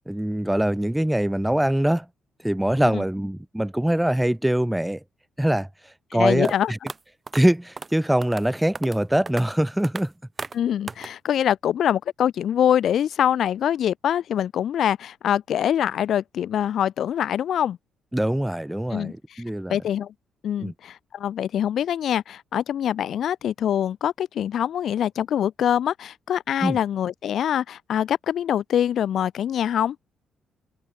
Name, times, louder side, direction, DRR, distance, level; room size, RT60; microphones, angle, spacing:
voice 1, 0.1-2.0 2.4-5.0 5.4-5.7 6.1-6.8 7.3-10.1 18.1-19.8 20.6-20.7 26.6-26.8, right 1 dB, 5° right, 1.5 m, -23 dB
voice 2, 6.1-6.7 10.5-17.8 18.9-19.4 19.7-20.1 20.4-30.0, left 10 dB, 55° left, 0.8 m, -24 dB
sound 1, 6.4-6.5 6.9-7.0 7.3-7.4 7.8-7.9 8.2-8.4 8.7-9.0 9.3-9.4 9.8-10.0 10.4-10.5 10.9-11.1, right 4 dB, 20° right, 0.5 m, -34 dB
cardioid pair, 155°, 0 cm